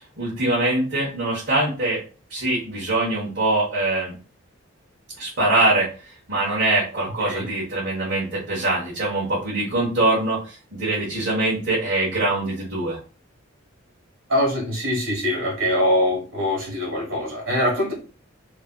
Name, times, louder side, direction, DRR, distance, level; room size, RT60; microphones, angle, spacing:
voice 1, 0.2-2.0 2.3-4.1 5.2-13.0, right 2 dB, 55° right, -8 dB, 1.0 m, -23 dB
voice 2, 14.3-17.9, left 1 dB, 80° right, 0 dB, 1.4 m, -23 dB
3.2 x 2.5 x 2.3 m, 0.36 s
head